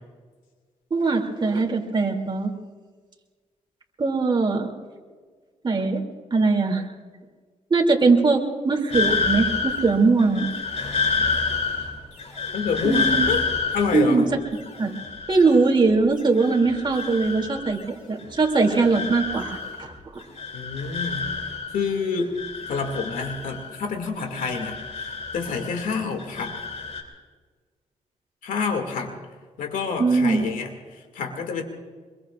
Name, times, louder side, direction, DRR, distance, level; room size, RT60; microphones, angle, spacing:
voice 1, 0.9-2.5 4.0-4.7 5.6-6.0 6.3-6.8 7.7-10.5 12.8-13.3 13.9-14.2 14.8-14.9 15.3-17.8 18.1-20.2 30.0-30.4, right 3 dB, 35° right, 1 dB, 2.9 m, -21 dB
sound 1, 8.9-15.9 16.2-17.9 18.2-19.9 20.2-21.9 22.2-23.9 24.2-25.9 26.2-27.0, left 4 dB, 55° left, 3.2 m, -29 dB
voice 2, 12.5-13.4 13.7-14.3 20.5-21.3 21.7-22.3 22.7-26.6 28.4-29.2 29.6-31.6, left 5 dB, 85° left, 4 dB, 2.3 m, -28 dB
25.5 x 22.0 x 2.5 m, 1.5 s
cardioid pair, 85°, 14 cm